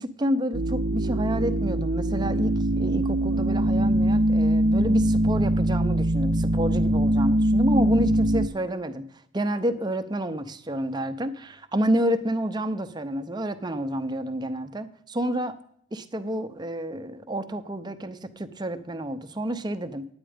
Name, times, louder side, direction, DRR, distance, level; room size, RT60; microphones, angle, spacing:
voice 1, 0.0-9.0 9.3-15.6 15.9-20.1, right 1 dB, 20° right, 10 dB, 0.6 m, -29 dB
sound 1, 0.5-8.5, right 1 dB, 65° right, 0.7 m, -23 dB
10.0 x 8.8 x 5.0 m, 0.69 s
head